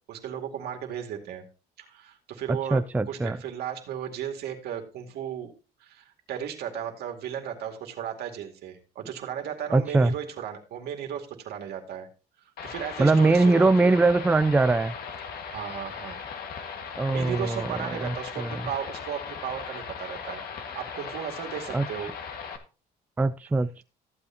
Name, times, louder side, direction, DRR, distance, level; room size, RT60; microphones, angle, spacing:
voice 1, 0.1-1.4 1.8-2.8 3.1-5.5 5.8-12.1 12.6-14.0 15.5-16.2 17.1-22.1, right 9 dB, 75° right, 2.3 m, -35 dB
voice 2, 2.7-3.4 9.7-10.1 13.0-14.9 17.0-18.6 21.7-21.9 23.2-23.8, right 3 dB, 10° right, 0.4 m, -22 dB
sound 1, 12.6-22.6, left 6 dB, 65° left, 1.8 m, -38 dB
14.0 x 8.4 x 2.9 m
cardioid pair, 110°, 17 cm